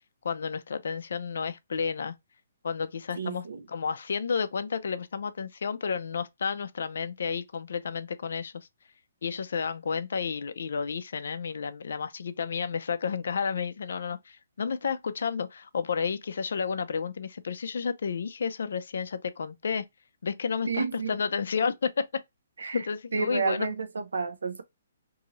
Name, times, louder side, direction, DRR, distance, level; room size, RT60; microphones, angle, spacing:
voice 1, 0.2-2.1 2.6-8.7 9.2-19.9 20.2-22.1 22.7-23.7, left 6 dB, 70° left, 0.4 m, -31 dB
voice 2, 3.2-3.7 20.7-21.2 22.6-22.8 23.1-24.6, right 4 dB, 80° right, 0.6 m, -30 dB
2.7 x 2.6 x 2.9 m
hypercardioid pair, 140°, 0 cm